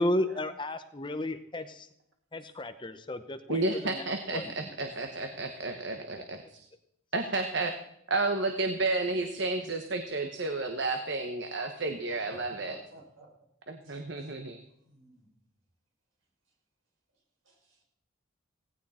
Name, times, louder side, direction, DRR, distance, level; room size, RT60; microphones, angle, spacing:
voice 1, 0.0-1.9 2.3-4.4, left 1 dB, 20° left, 10 dB, 0.8 m, -33 dB
voice 2, 3.5-6.4 7.1-7.7 8.1-12.7 13.7-14.6, right 2 dB, 55° right, 6 dB, 1.2 m, -31 dB
voice 3, 4.4-4.7 5.3-5.4 12.2-13.3 13.8-14.3 14.8-15.3 17.5-17.8, right 1 dB, 70° right, -1 dB, 5.2 m, -51 dB
17.5 x 15.5 x 4.3 m, 0.77 s
head